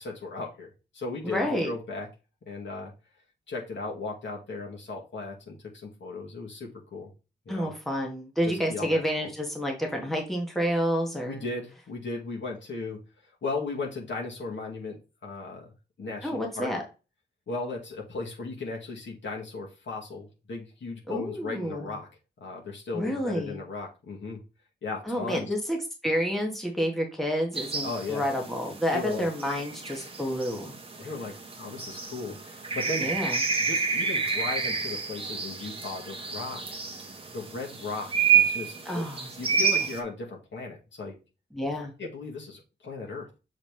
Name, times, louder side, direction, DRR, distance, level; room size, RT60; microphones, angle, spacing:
voice 1, 0.0-2.1 2.5-2.9 3.5-7.1 7.5-7.7 8.5-9.3 11.3-13.0 13.4-15.0 15.2-15.7 16.0-16.7 17.5-22.1 22.4-24.4 24.8-25.5 27.8-28.3 28.9-29.3 31.0-33.1 33.6-36.8 37.3-39.0 39.4-41.2 42.0-43.3, left 3 dB, 75° left, -1 dB, 2.2 m, -36 dB
voice 2, 1.2-1.7 7.5-11.4 16.2-16.8 21.1-22.0 22.9-23.6 25.0-25.8 26.0-30.7 33.0-33.4 38.8-39.3 41.5-41.9, equal, ahead, 0 dB, 1.6 m, -29 dB
sound 1, 27.5-40.0, right 6 dB, 30° right, 1.1 m, -29 dB
7.2 x 4.1 x 3.5 m, 0.31 s
wide cardioid pair, 125°, 19 cm